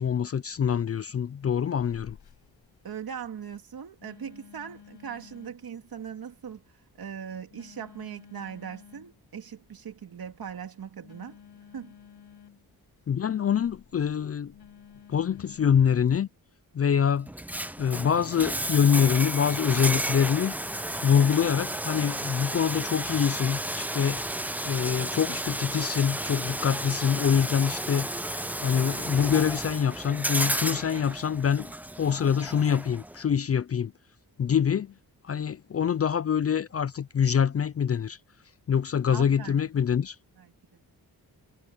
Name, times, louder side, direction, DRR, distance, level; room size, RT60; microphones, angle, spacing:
voice 1, 0.0-2.2 13.1-14.5 15.1-16.3 16.7-17.3 17.8-20.5 21.0-24.2 24.7-28.1 28.6-31.7 32.0-33.9 34.4-34.9 35.2-38.2 38.7-40.2, left 8 dB, 40° left, 0.5 m, -25 dB
Telephone, 1.8-16.2, left 8 dB, 85° left, 6.4 m, -54 dB
voice 2, 2.8-6.6 7.0-11.4 11.7-11.9 39.1-39.7 40.4-40.8, right 8 dB, 65° right, 2.8 m, -40 dB
Bathtub (filling or washing), 17.3-33.2, right 1 dB, 5° right, 0.7 m, -32 dB
wide cardioid pair, 125°, 38 cm